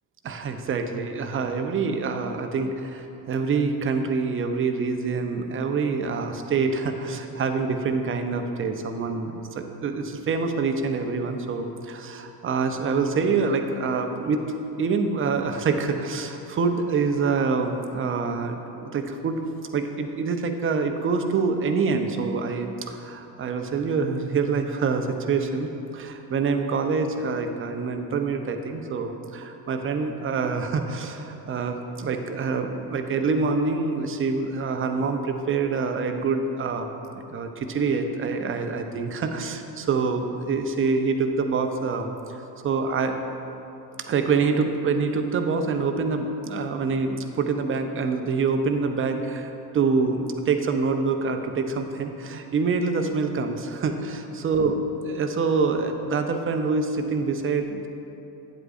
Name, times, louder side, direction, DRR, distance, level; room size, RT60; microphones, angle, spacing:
voice 1, 0.2-14.5 14.8-19.4 19.7-36.9 37.3-43.2 44.0-54.8 55.0-57.9, right 4 dB, 25° right, 6 dB, 0.7 m, -26 dB
10.0 x 7.8 x 2.5 m, 2.8 s
hypercardioid pair, 65°, 50 cm